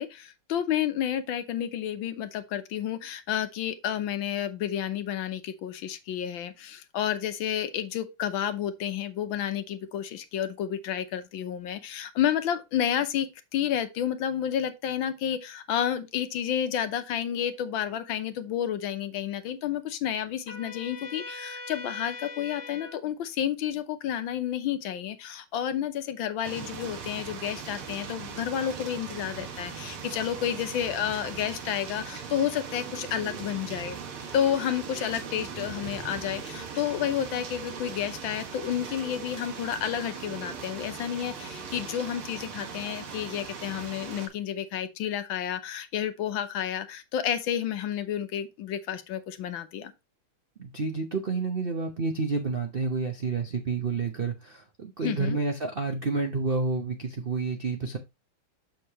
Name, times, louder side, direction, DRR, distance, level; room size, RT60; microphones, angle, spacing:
voice 1, 0.0-34.0 34.3-49.9 55.0-55.4, left 10 dB, 70° left, 1.5 m, -30 dB
Trumpet, 20.5-23.0, left 2 dB, 15° left, 3.1 m, -41 dB
sound 1, 26.4-44.3, right 6 dB, 85° right, 2.2 m, -39 dB
voice 2, 50.6-58.0, right 4 dB, 65° right, 0.5 m, -29 dB
6.6 x 6.4 x 2.9 m
omnidirectional pair, 2.3 m